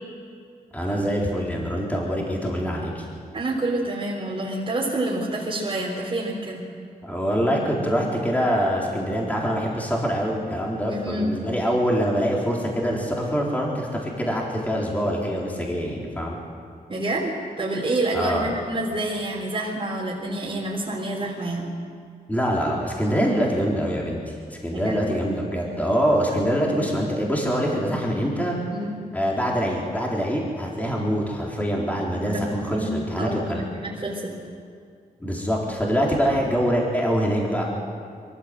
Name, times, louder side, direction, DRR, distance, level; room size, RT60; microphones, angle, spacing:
voice 1, 0.7-3.0 7.0-16.4 18.1-18.5 22.3-24.4 24.6-28.6 29.1-33.6 35.2-37.6, equal, 10° left, -3 dB, 4.0 m, -24 dB
voice 2, 3.3-6.7 10.9-11.4 16.9-21.7 24.7-25.0 28.7-28.9 32.3-34.3, right 2 dB, 35° right, -5 dB, 3.9 m, -28 dB
23.0 x 15.5 x 7.7 m, 2.3 s
wide cardioid pair, 90°, 15 cm